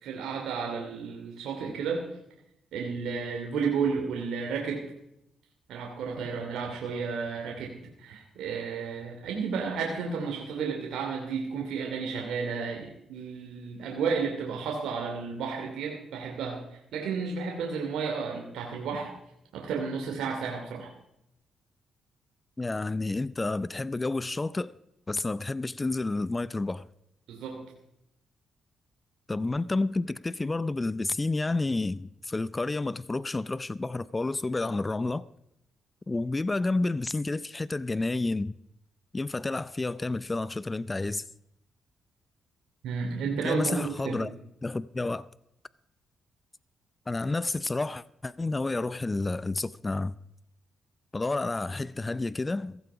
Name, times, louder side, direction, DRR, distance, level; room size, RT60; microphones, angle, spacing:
voice 1, 0.0-2.0 2.7-4.8 5.7-19.1 19.5-20.9 27.3-27.6 42.8-44.3, right 5 dB, 80° right, 2.7 m, -32 dB
voice 2, 22.6-24.7 25.1-26.9 29.3-35.3 36.1-38.6 39.1-41.2 43.4-44.3 44.6-45.3 47.1-50.2 51.1-52.8, left 2 dB, 25° left, 0.5 m, -30 dB
16.0 x 15.5 x 4.9 m
cardioid pair, 70°, 0 cm